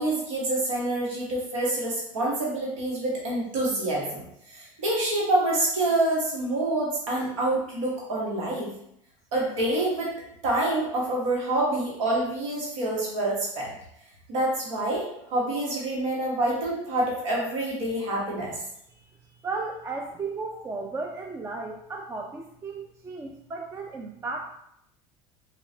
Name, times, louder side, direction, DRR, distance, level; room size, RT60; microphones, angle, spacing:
voice 1, 0.0-8.7 9.3-10.1 10.4-13.7 14.3-18.5, right 1 dB, 80° right, -4 dB, 1.1 m, -27 dB
voice 2, 18.9-24.5, right 3 dB, 20° right, 2 dB, 0.3 m, -35 dB
3.5 x 2.4 x 3.2 m, 0.75 s
hypercardioid pair, 90°, 16 cm